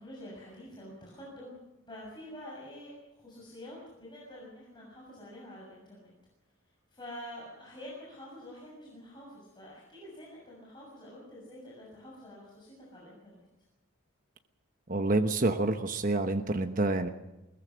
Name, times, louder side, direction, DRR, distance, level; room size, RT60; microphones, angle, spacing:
voice 1, 0.0-6.1 6.6-13.5, left 1 dB, 20° left, -4 dB, 6.8 m, -47 dB
voice 2, 14.9-17.1, right 2 dB, 40° right, 5 dB, 1.1 m, -28 dB
22.0 x 20.0 x 6.4 m, 0.97 s
head